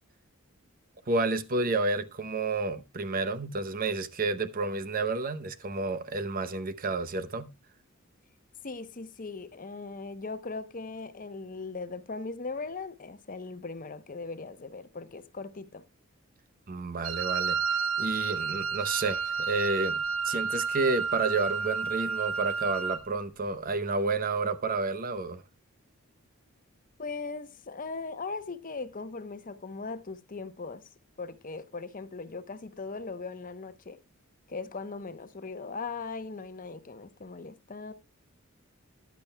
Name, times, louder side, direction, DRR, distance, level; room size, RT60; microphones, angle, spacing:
voice 1, 1.1-7.5 16.7-25.4, right 3 dB, 40° right, 0.8 m, -30 dB
voice 2, 8.6-15.8 27.0-30.8 31.2-34.0 34.5-37.9, left 4 dB, 40° left, 0.8 m, -39 dB
Wind instrument woodwind instrument, 17.0-23.1, right 5 dB, 80° right, 0.9 m, -31 dB
14.5 x 10.5 x 2.2 m
head